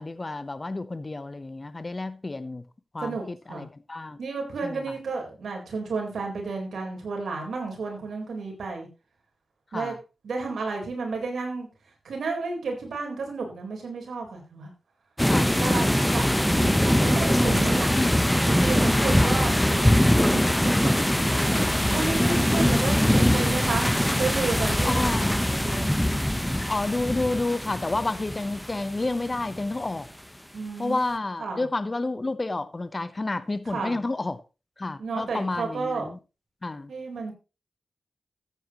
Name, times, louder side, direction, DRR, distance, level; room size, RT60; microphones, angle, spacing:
voice 1, 0.0-2.6 2.9-4.2 4.6-4.8 9.7-10.0 15.3-15.8 18.0-18.1 19.2-19.3 24.8-25.3 26.7-30.1 30.8-34.4 34.8-36.2 36.6-36.9, left 2 dB, 35° left, 0.9 m, -30 dB
voice 2, 3.0-3.6 4.2-8.9 9.7-10.0 10.2-11.7 12.0-14.7 15.6-17.9 18.5-21.0 21.3-25.9 30.5-31.0 31.4-31.6 33.7-33.9 35.0-36.1 36.9-37.3, right 4 dB, 85° right, 4.1 m, -32 dB
sound 1, 15.2-29.8, equal, 5° left, 1.0 m, -22 dB
14.0 x 9.0 x 3.0 m
cardioid pair, 55°, 0 cm